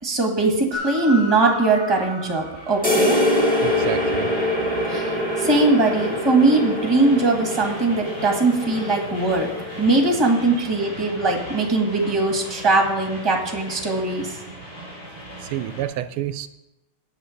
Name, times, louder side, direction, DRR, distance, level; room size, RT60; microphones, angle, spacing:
voice 1, 0.0-3.2 4.9-5.1 5.4-9.5 9.8-14.3, right 3 dB, 15° right, 1 dB, 1.5 m, -20 dB
Train, 0.7-15.9, equal, 65° left, 4.3 m, -37 dB
sound 1, 2.8-10.4, left 1 dB, 5° left, 1.5 m, -24 dB
voice 2, 3.6-4.3 10.6-10.7 15.5-16.5, right 12 dB, 80° right, 11 dB, 1.4 m, -29 dB
8.6 x 8.0 x 6.5 m, 0.95 s
omnidirectional pair, 2.4 m